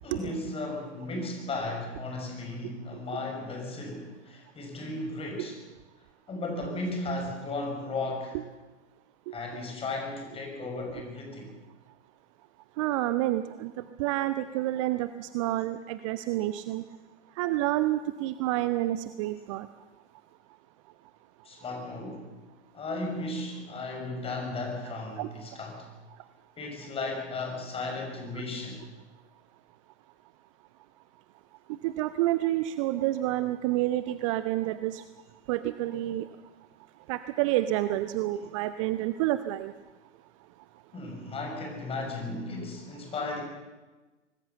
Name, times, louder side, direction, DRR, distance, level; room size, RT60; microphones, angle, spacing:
voice 1, 0.0-5.6 6.3-8.4 9.3-11.5 21.4-22.4 22.7-25.9 26.6-28.8 40.9-43.4, left 2 dB, 15° left, 2 dB, 6.3 m, -35 dB
voice 2, 12.8-13.7 14.0-16.8 17.4-19.7 25.2-25.3 31.8-35.0 35.5-36.2 37.1-39.7, right 15 dB, 25° right, 13 dB, 0.7 m, -29 dB
25.0 x 19.5 x 7.1 m, 1.2 s
figure-of-eight pair, 110°, 36 cm